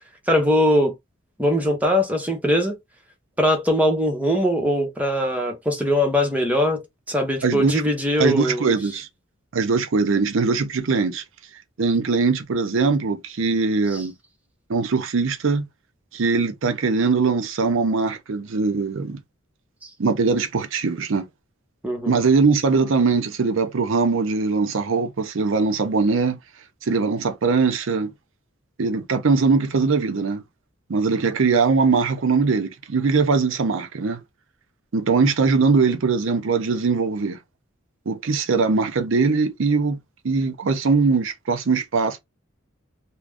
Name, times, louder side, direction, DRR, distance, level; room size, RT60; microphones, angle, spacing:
voice 1, 0.3-0.9 1.4-2.8 3.4-6.8 7.1-8.7 21.8-22.1, equal, 5° right, 0.8 m, -21 dB
voice 2, 7.4-7.8 8.2-9.1 9.5-11.2 11.8-14.1 14.7-15.7 16.1-19.2 20.0-21.3 22.1-26.4 26.8-28.1 28.8-30.4 30.9-34.2 34.9-37.4 38.1-40.0 40.2-42.2, right 4 dB, 70° right, 0.5 m, -21 dB
2.5 x 2.1 x 3.3 m
head